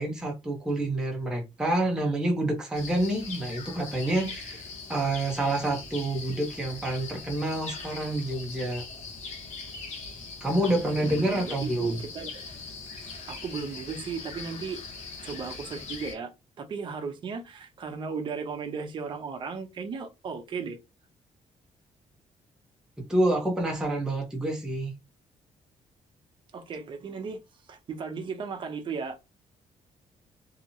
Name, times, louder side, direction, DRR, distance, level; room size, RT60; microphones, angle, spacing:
voice 1, 0.0-8.8 10.4-12.0 23.0-24.9, right 1 dB, 5° right, 0.7 m, -28 dB
sound 1, 2.7-16.1, left 4 dB, 60° left, 1.0 m, -41 dB
voice 2, 10.6-12.3 13.3-14.8 15.2-16.3 16.6-20.8 26.5-27.4 27.7-29.2, right 5 dB, 40° right, 0.7 m, -35 dB
2.9 x 2.8 x 2.6 m
cardioid pair, 175°, 13 cm